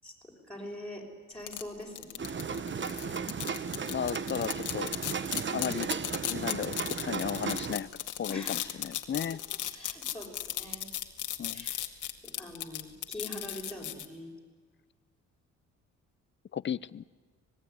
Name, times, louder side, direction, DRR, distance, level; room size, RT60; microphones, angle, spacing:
voice 1, 0.0-2.2 8.3-8.7 9.7-10.9 11.5-11.8 12.2-14.3, left 1 dB, 5° left, -2 dB, 6.4 m, -43 dB
sound 1, 1.5-14.0, left 12 dB, 80° left, 2.1 m, -35 dB
sound 2, 2.2-7.8, right 6 dB, 40° right, 1.3 m, -35 dB
voice 2, 3.9-4.9 5.5-5.9 6.3-7.9 8.2-9.4 11.4-11.7 16.5-17.0, left 8 dB, 40° left, 20 dB, 0.7 m, -34 dB
26.0 x 19.5 x 9.8 m, 1.5 s
cardioid pair, 90°, 30 cm